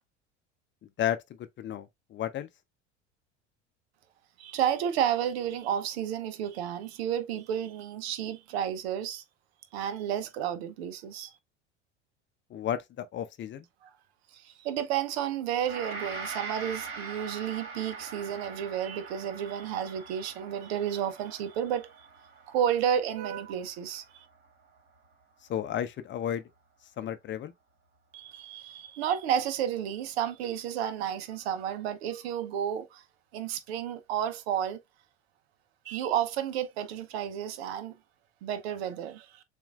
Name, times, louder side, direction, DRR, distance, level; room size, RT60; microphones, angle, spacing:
voice 1, 1.6-2.5 12.5-13.6 25.5-26.4 27.0-27.5, left 10 dB, 35° left, 0.7 m, -32 dB
voice 2, 4.4-9.2 9.7-11.3 13.8-13.9 14.3-21.9 22.5-24.3 28.1-33.0 33.3-34.8 35.8-37.9 38.4-39.4, right 9 dB, 65° right, 0.8 m, -31 dB
Gong, 15.6-25.0, right 4 dB, 35° right, 2.9 m, -43 dB
6.9 x 2.6 x 2.4 m
figure-of-eight pair, 70°, 34 cm